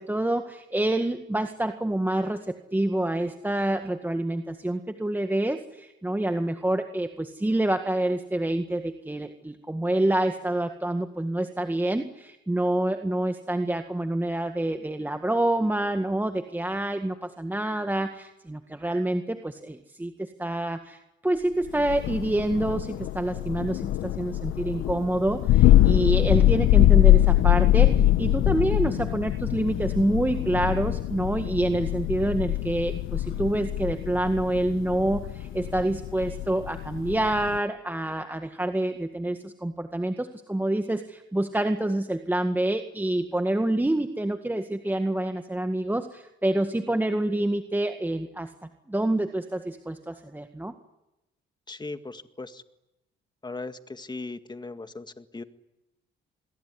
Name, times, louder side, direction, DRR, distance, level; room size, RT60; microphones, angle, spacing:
voice 1, 0.0-48.5 48.9-50.7, right 1 dB, 10° right, 7 dB, 1.8 m, -27 dB
Thunder, 21.8-37.6, left 14 dB, 85° left, 1.2 m, -23 dB
voice 2, 51.7-52.6 53.4-55.4, left 3 dB, 20° left, 10 dB, 2.0 m, -38 dB
28.0 x 21.5 x 9.8 m, 0.95 s
cardioid pair, 90°, 20 cm